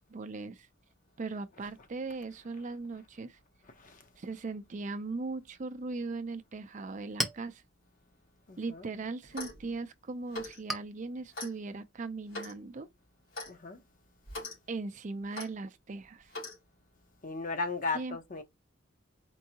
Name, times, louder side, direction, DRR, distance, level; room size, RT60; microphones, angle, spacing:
voice 1, 0.1-0.7 1.2-3.4 4.2-7.6 8.6-12.9 14.7-16.3 17.9-18.2, right 3 dB, 40° right, 0.4 m, -39 dB
Chink clink, 6.6-13.8, equal, ahead, 0.6 m, -44 dB
voice 2, 8.5-8.9 13.5-13.8 17.2-18.4, left 3 dB, 40° left, 0.7 m, -36 dB
Clock, 9.2-9.6 10.3-10.6 11.3-11.5 12.3-12.6 13.3-13.5 14.3-14.6 15.3-15.5 16.3-16.6, left 2 dB, 80° left, 2.7 m, -40 dB
4.5 x 2.6 x 2.8 m
head